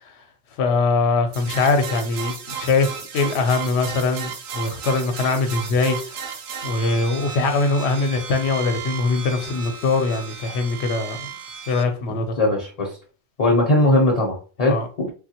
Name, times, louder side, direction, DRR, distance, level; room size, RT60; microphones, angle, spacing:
voice 1, 0.6-6.4 6.6-11.3 11.7-12.4 14.7-14.9, left 3 dB, 75° left, 0.9 m, -22 dB
sound 1, 1.3-11.8, right 7 dB, 70° right, 0.8 m, -34 dB
voice 2, 12.1-13.0 13.4-15.1, left 1 dB, 40° left, 0.6 m, -20 dB
3.2 x 2.2 x 2.8 m
omnidirectional pair, 1.2 m